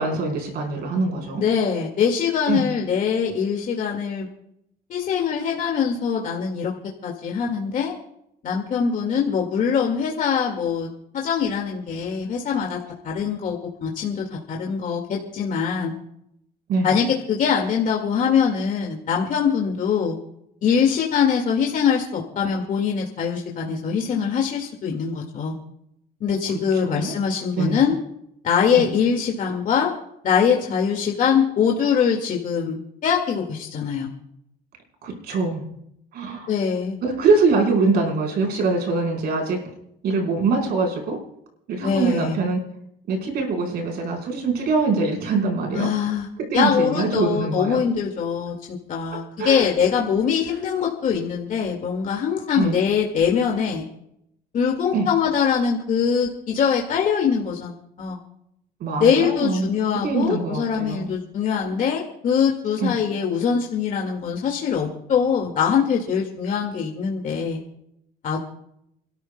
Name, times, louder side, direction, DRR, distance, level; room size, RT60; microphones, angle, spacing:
voice 1, 0.0-1.4 2.4-2.7 16.7-16.9 26.8-27.1 27.6-27.8 28.8-28.9 35.0-35.6 36.1-36.5 37.0-39.6 40.0-41.2 41.7-42.6 43.1-45.9 46.5-47.8 49.4-49.7 52.5-52.8 54.9-55.1 58.8-61.1 62.8-62.9, right 3 dB, 70° right, 1 dB, 4.3 m, -23 dB
voice 2, 1.4-4.3 4.9-6.7 7.0-7.9 8.4-12.8 13.0-15.9 16.8-20.2 20.6-25.5 26.2-27.9 28.4-29.9 30.2-34.1 36.5-37.0 41.8-42.4 45.7-46.3 46.5-48.5 48.9-53.8 54.5-58.2 59.0-67.6 68.2-68.4, left 7 dB, 50° left, 0 dB, 2.0 m, -23 dB
28.5 x 13.0 x 2.2 m, 0.76 s
cardioid pair, 110°, 17 cm